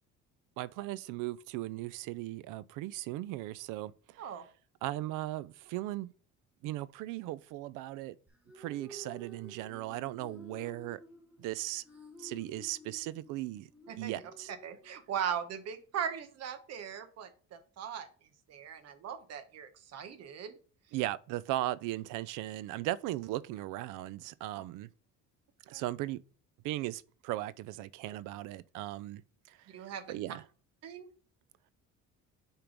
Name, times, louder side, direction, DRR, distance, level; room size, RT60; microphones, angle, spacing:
voice 1, 0.6-4.2 4.8-6.1 6.6-8.2 8.6-11.0 11.4-11.8 12.2-13.7 14.0-14.5 20.9-24.9 25.7-26.2 26.6-29.2 29.5-29.6 30.1-30.4, right 16 dB, 85° right, 0.5 m, -37 dB
sound 1, 8.3-15.3, equal, 5° right, 1.3 m, -53 dB
voice 2, 13.9-14.2 14.6-18.1 18.5-20.6 25.7-25.8 29.7-30.1 30.8-31.1, right 8 dB, 55° right, 1.1 m, -39 dB
5.1 x 4.5 x 5.1 m
cardioid pair, 145°, 30 cm